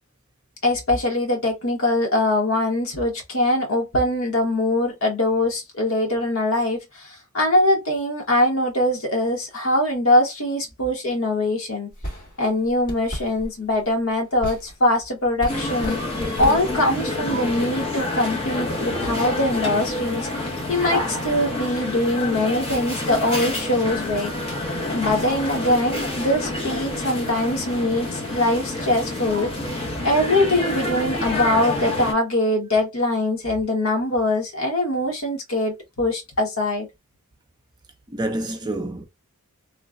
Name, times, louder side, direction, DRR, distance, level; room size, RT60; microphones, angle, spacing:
voice 1, 0.6-11.9 12.4-16.0 16.4-24.3 24.9-29.5 30.0-36.9, left 1 dB, 65° left, 1.2 m, -22 dB
sound 1, 11.9-16.9, equal, 40° left, 1.5 m, -35 dB
sound 2, 15.5-32.1, left 2 dB, 25° left, 0.8 m, -28 dB
voice 2, 38.1-39.0, right 1 dB, 20° right, 0.5 m, -28 dB
3.1 x 2.2 x 2.4 m
head